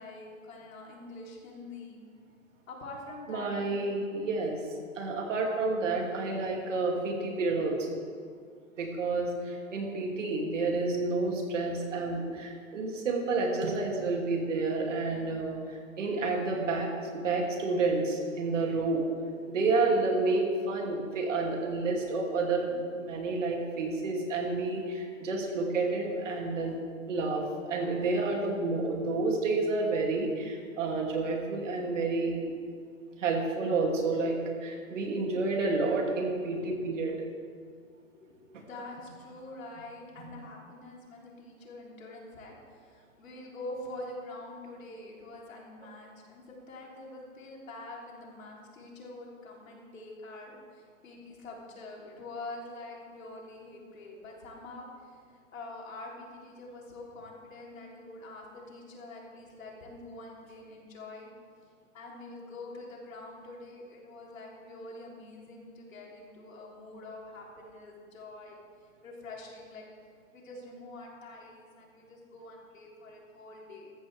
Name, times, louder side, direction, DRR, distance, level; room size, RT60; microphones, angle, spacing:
voice 1, 0.0-2.0 2.7-4.0 11.9-12.2 36.6-36.9 38.1-61.3 61.9-68.6 69.0-69.8 70.3-73.9, left 2 dB, 70° left, -2 dB, 3.5 m, -45 dB
voice 2, 3.3-4.6 4.9-8.0 8.8-19.0 19.5-26.8 27.1-32.5 33.2-37.1, right 3 dB, 60° right, 0 dB, 2.9 m, -30 dB
14.0 x 14.0 x 3.5 m, 2.1 s
hypercardioid pair, 150°, 41 cm